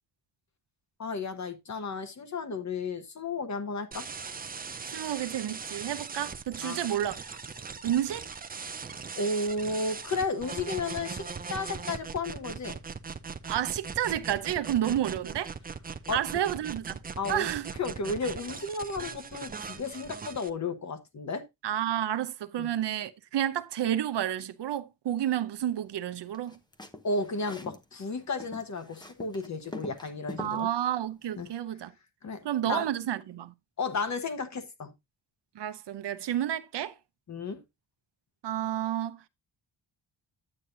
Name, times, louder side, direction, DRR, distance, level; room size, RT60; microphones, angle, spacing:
voice 1, 1.0-4.1 6.6-6.8 9.2-12.8 14.8-14.9 16.1-16.2 17.2-17.5 17.8-21.5 22.6-22.7 27.0-30.7 31.4-31.5 32.2-32.9 33.8-34.9 37.3-37.6, left 3 dB, 40° left, 1.2 m, -33 dB
sound 1, 3.9-20.5, right 5 dB, 20° right, 0.5 m, -39 dB
voice 2, 4.9-7.4 7.8-8.2 13.5-15.5 16.1-17.0 17.3-17.7 21.6-26.6 30.4-31.9 32.4-33.5 35.5-36.9 38.4-39.2, right 11 dB, 70° right, 0.8 m, -30 dB
sound 2, 26.3-27.8 28.1-30.6, left 1 dB, 10° left, 0.8 m, -43 dB
9.9 x 8.5 x 2.6 m
wide cardioid pair, 165°, 43 cm